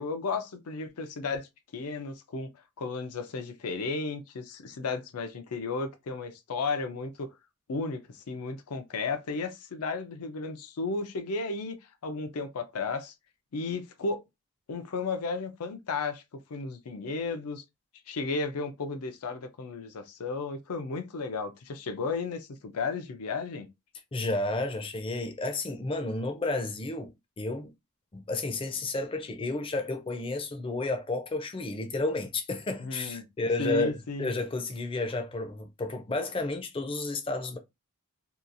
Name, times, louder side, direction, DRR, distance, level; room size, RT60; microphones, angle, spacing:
voice 1, 0.0-1.5 1.7-2.5 2.8-7.3 7.7-11.8 12.0-13.1 13.5-14.2 14.7-16.2 16.5-17.6 18.1-23.7 32.8-33.2 33.6-34.3, left 4 dB, 80° left, 0.5 m, -34 dB
voice 2, 24.1-27.7 28.1-37.6, left 2 dB, 25° left, 0.4 m, -32 dB
2.8 x 2.3 x 2.5 m
head